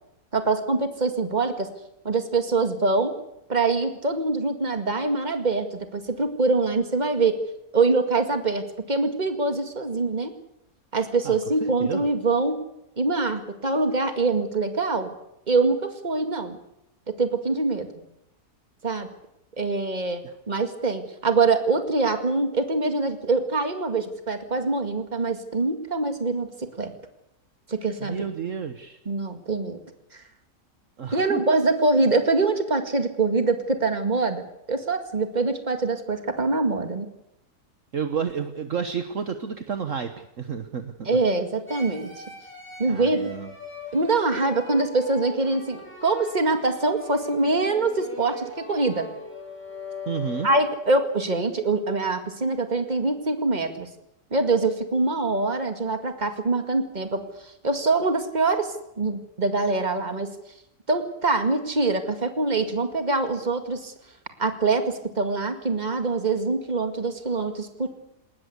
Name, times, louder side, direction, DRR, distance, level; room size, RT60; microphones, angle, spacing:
voice 1, 0.3-1.7 2.0-3.1 3.5-7.4 7.7-10.3 10.9-12.6 13.0-15.1 15.5-16.6 17.2-17.9 18.8-19.1 19.6-26.9 27.7-28.2 29.1-29.8 31.1-37.1 41.1-42.2 42.8-43.2 43.9-49.1 50.4-53.9 54.3-57.2 57.6-60.3 60.9-63.9 64.4-67.9, right 3 dB, 25° right, 7 dB, 2.2 m, -24 dB
voice 2, 11.2-12.1 20.2-20.3 28.0-29.0 31.0-31.4 37.9-41.2 42.9-43.5 50.1-50.5, right 7 dB, 55° right, 8 dB, 1.5 m, -31 dB
sound 1, 41.7-51.0, left 3 dB, 5° left, 7.7 m, -40 dB
20.5 x 19.0 x 8.3 m, 0.82 s
omnidirectional pair, 1.7 m